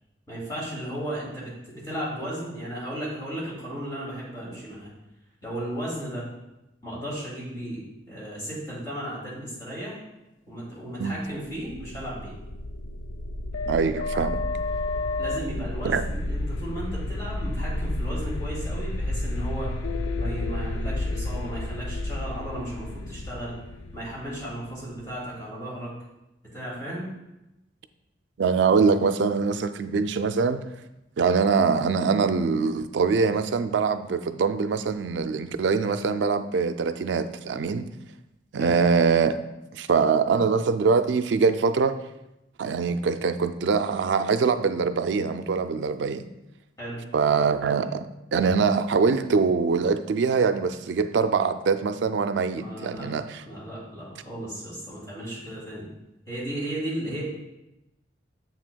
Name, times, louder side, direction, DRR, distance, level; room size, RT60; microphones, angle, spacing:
voice 1, 0.3-4.9 5.4-6.2 6.8-10.0 10.5-12.3 15.2-19.7 20.1-23.6 23.9-25.9 26.5-27.1 38.6-38.8 46.8-47.0 52.5-53.1 53.4-55.9 56.3-57.2, right 1 dB, 20° left, -7 dB, 2.4 m, -35 dB
sound 1, 11.5-25.2, left 2 dB, 85° left, 0.4 m, -31 dB
voice 2, 13.7-14.4 15.8-16.0 28.4-30.6 31.2-37.9 38.5-39.4 39.7-42.0 42.6-46.3 47.1-53.4, right 5 dB, 70° right, 10 dB, 0.4 m, -23 dB
7.6 x 6.1 x 2.3 m, 0.92 s
head